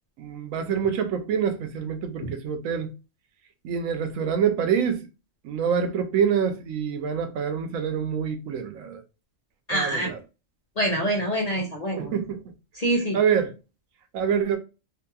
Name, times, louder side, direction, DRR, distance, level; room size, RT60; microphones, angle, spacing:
voice 1, 0.2-2.9 3.6-5.1 5.4-9.0 9.7-10.2 12.0-12.5 13.1-13.5 14.1-14.6, right 7 dB, 90° right, 1.0 m, -26 dB
voice 2, 9.7-10.1 10.8-12.1 12.8-13.2, right 1 dB, 45° left, 0.6 m, -25 dB
2.9 x 2.6 x 2.2 m
omnidirectional pair, 1.3 m